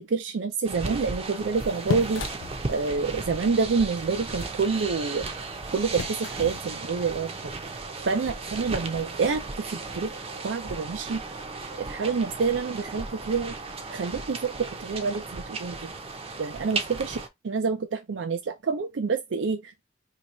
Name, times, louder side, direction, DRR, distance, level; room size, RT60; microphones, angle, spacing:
voice 1, 0.0-2.2 2.7-5.3 5.7-7.3 8.0-10.1 10.4-11.2 11.8-13.5 13.9-15.9 16.4-17.2 17.4-19.8, right 4 dB, 85° right, 0.5 m, -27 dB
sound 1, 0.6-17.3, right 3 dB, 30° right, 0.6 m, -36 dB
sound 2, 1.6-6.6, left 6 dB, 75° left, 0.3 m, -37 dB
2.8 x 2.8 x 4.1 m
head